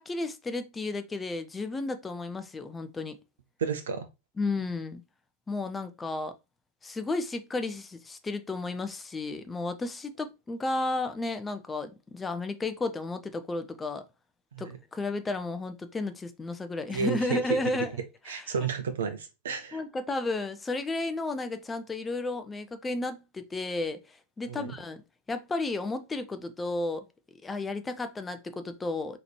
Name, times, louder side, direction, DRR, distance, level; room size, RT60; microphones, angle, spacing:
voice 1, 0.0-3.2 4.4-5.0 5.5-6.3 6.8-14.0 14.6-17.9 18.3-18.4 19.7-25.0 25.3-27.1 27.4-29.2, left 2 dB, 15° left, 0.5 m, -33 dB
voice 2, 3.6-4.1 14.5-14.8 16.9-17.6 18.2-19.8 24.5-24.7, right 6 dB, 65° right, 0.5 m, -32 dB
3.9 x 2.9 x 3.1 m
figure-of-eight pair, 90°, 0 cm